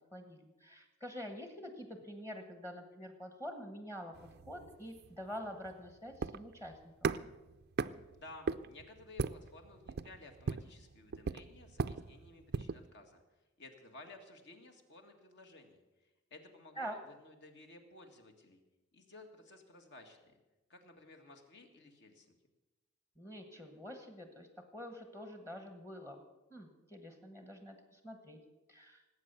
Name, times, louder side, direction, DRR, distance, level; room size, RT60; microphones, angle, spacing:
voice 1, 0.1-4.1 4.5-7.1 16.8-17.0 23.2-26.2 26.5-28.4 28.7-29.0, equal, 15° left, 5 dB, 1.2 m, -46 dB
sound 1, 4.1-12.9, right 5 dB, 50° right, 0.4 m, -39 dB
voice 2, 8.1-13.2 13.6-18.6 18.9-20.4 20.7-22.4, left 2 dB, 55° left, 4 dB, 1.9 m, -56 dB
18.5 x 8.5 x 6.8 m, 1.1 s
head